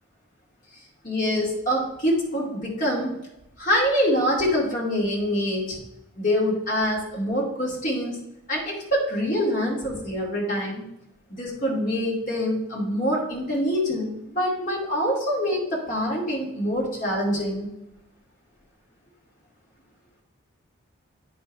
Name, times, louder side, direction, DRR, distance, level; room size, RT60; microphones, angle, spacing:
voice 1, 1.0-3.2 3.6-5.8 6.2-8.2 8.5-10.9 11.3-17.7, equal, 40° left, -4 dB, 2.3 m, -25 dB
9.0 x 5.7 x 3.2 m, 0.85 s
head